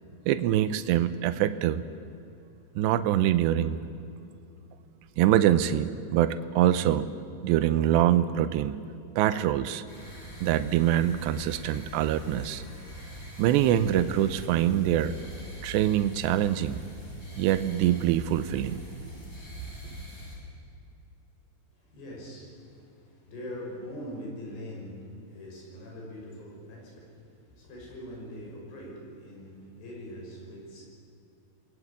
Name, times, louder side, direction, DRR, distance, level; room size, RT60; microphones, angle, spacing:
voice 1, 0.3-1.8 2.8-3.8 5.2-7.1 7.4-8.8 9.2-9.8 10.4-12.6 13.4-15.1 15.6-16.9 17.4-18.8, right 12 dB, 85° right, 12 dB, 3.0 m, -24 dB
sound 1, 9.9-20.4, equal, 20° left, 8.1 m, -43 dB
voice 2, 21.7-30.9, equal, 75° left, -1 dB, 8.2 m, -42 dB
28.0 x 20.5 x 8.6 m, 2.7 s
omnidirectional pair, 4.9 m